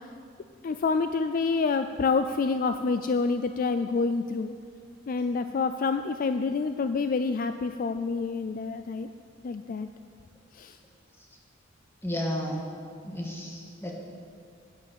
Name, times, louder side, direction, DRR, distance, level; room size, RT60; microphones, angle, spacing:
voice 1, 0.6-4.5 5.1-9.1 9.4-9.9 10.5-10.8, left 4 dB, 45° left, 9 dB, 0.3 m, -27 dB
voice 2, 12.0-12.7 13.0-14.0, equal, 10° left, -1 dB, 1.7 m, -33 dB
10.5 x 9.0 x 6.9 m, 2.4 s
head